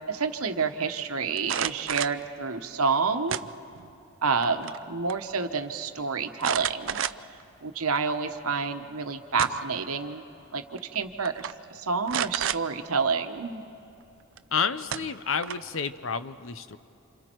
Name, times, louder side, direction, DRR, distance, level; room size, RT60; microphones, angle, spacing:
voice 1, 0.1-3.4 4.2-7.0 7.6-10.2 10.5-13.7, right 5 dB, 80° right, 7 dB, 1.1 m, -29 dB
sound 1, 1.4-2.2 3.3-3.9 4.3-4.8 5.1-5.2 6.4-7.4 8.0-8.1 9.1-9.8 10.8-11.0 11.3-11.5 12.1-12.6 14.4-14.5 14.9-15.8, right 9 dB, 60° right, 0.4 m, -31 dB
voice 2, 14.5-16.8, left 6 dB, 65° left, 12 dB, 0.7 m, -30 dB
29.5 x 27.5 x 4.6 m, 2.9 s
head